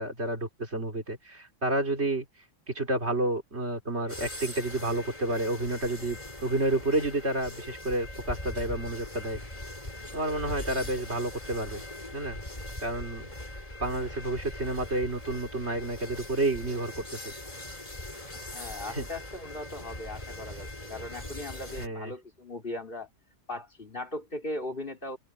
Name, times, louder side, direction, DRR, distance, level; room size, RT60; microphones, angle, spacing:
voice 1, 0.0-2.3 2.7-9.4 10.1-11.8 12.1-12.4 12.8-13.3 13.8-17.3 18.9-19.1 21.8-22.1, right 2 dB, 55° right, 4.1 m, -30 dB
sound 1, 4.1-21.9, left 1 dB, 30° left, 3.9 m, -41 dB
voice 2, 18.3-23.1 23.5-25.2, left 1 dB, 45° left, 3.9 m, -38 dB
omnidirectional pair, 1.3 m